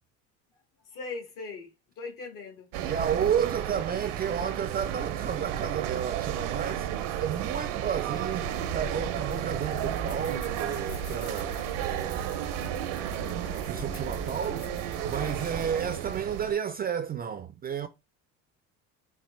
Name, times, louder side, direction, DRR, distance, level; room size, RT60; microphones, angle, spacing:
voice 1, 0.9-2.7, left 4 dB, 60° left, 1.7 m, -40 dB
sound 1, 2.7-16.5, right 11 dB, 80° right, 0.6 m, -33 dB
voice 2, 2.8-12.5 13.1-14.7 15.0-17.9, right 8 dB, 25° right, 0.3 m, -32 dB
sound 2, 8.4-15.7, left 5 dB, 75° left, 1.5 m, -43 dB
4.2 x 2.0 x 3.0 m
hypercardioid pair, 75°, 37 cm